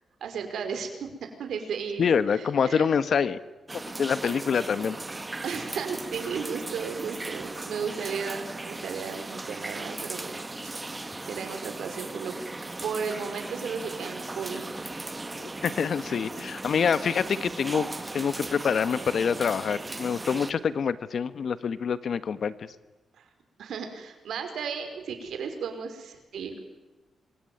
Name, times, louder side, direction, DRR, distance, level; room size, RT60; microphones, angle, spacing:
voice 1, 0.2-1.1 1.4-2.9 5.4-10.4 10.6-10.9 11.2-12.4 12.8-14.7 16.4-16.5 23.2-23.3 23.6-26.6, right 6 dB, 80° right, 7 dB, 5.1 m, -34 dB
voice 2, 2.0-3.4 4.0-5.0 15.4-17.9 18.1-22.7, left 6 dB, 60° left, 14 dB, 1.4 m, -26 dB
sound 1, 3.7-20.5, right 2 dB, 20° right, 1.8 m, -37 dB
27.0 x 23.5 x 9.4 m, 1.1 s
cardioid pair, 95°, 0 cm